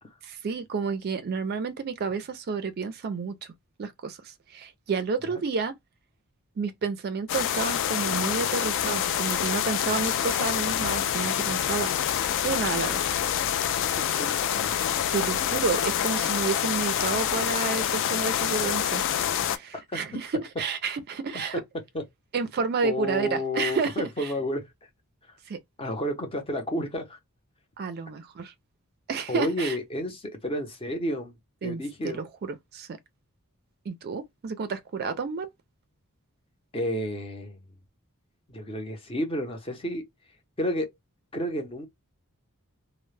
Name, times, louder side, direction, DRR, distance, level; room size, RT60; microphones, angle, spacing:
voice 1, 0.2-3.5 3.8-5.7 6.6-11.9 12.4-13.1 15.1-19.0 19.3-21.6 22.3-24.3 25.5-25.6 27.8-28.5 29.1-29.8 31.6-33.0 33.9-35.5, right 5 dB, 45° right, 0.4 m, -30 dB
sound 1, 7.3-19.6, left 10 dB, 60° left, 0.3 m, -26 dB
voice 2, 13.7-14.8 21.5-21.6 21.9-22.0 22.8-24.7 25.8-27.2 29.3-31.3 31.6-32.2 36.7-37.6 38.5-40.0 40.6-40.9 41.3-41.9, equal, 25° left, 0.6 m, -31 dB
2.1 x 2.0 x 3.1 m
head